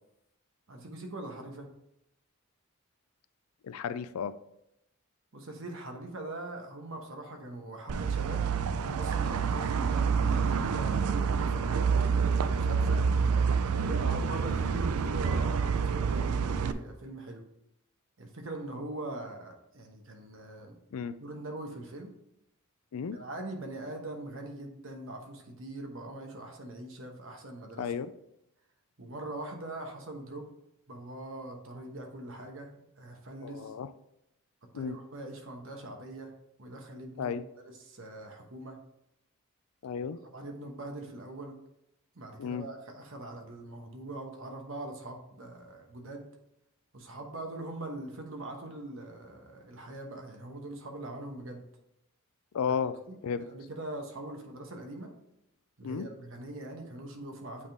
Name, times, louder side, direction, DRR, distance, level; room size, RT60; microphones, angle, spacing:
voice 1, 0.7-1.7 5.3-8.5 8.8-13.0 13.7-17.4 18.2-20.8 21.2-22.1 23.1-27.9 29.0-30.5 30.9-33.7 34.7-36.3 36.6-37.4 37.8-38.8 40.3-41.6 42.1-46.3 46.9-51.6 53.1-55.1 55.8-57.7, right 2 dB, 60° right, 3 dB, 1.1 m, -42 dB
voice 2, 3.6-4.3 20.9-21.2 22.9-23.2 27.8-28.1 33.4-33.9 34.7-35.0 37.2-37.4 39.8-40.2 42.4-42.7 52.5-53.0 53.2-53.5 55.8-56.1, left 6 dB, 85° left, 14 dB, 0.4 m, -33 dB
sound 1, 7.9-16.7, right 5 dB, 85° right, 0.4 m, -28 dB
8.4 x 3.6 x 3.5 m, 0.82 s
head